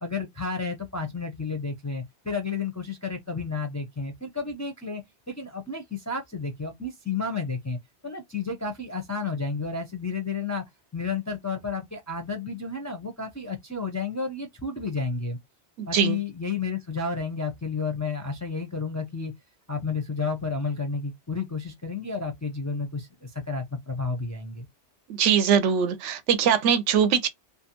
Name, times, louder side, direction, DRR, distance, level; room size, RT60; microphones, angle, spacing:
voice 1, 0.0-5.0 5.3-7.8 8.0-10.6 10.9-15.4 15.9-19.3 19.7-24.7, left 4 dB, 25° left, 0.4 m, -31 dB
voice 2, 15.8-16.2 25.2-27.3, right 7 dB, 85° right, 0.9 m, -22 dB
2.5 x 2.2 x 2.8 m
omnidirectional pair, 1.2 m